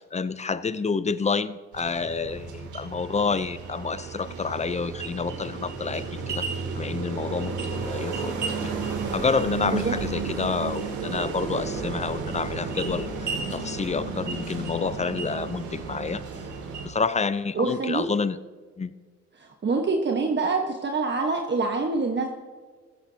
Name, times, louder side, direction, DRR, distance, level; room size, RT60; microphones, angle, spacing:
voice 1, 0.0-6.5 6.7-16.2 16.8-18.4 18.8-18.9, left 4 dB, 25° left, 15 dB, 0.6 m, -29 dB
sound 1, 1.7-16.9, right 4 dB, 75° right, 2.9 m, -32 dB
voice 2, 17.5-18.0 19.4-22.3, right 3 dB, 35° right, 2 dB, 1.4 m, -25 dB
15.5 x 14.5 x 2.9 m, 1.6 s
cardioid pair, 90°, 30 cm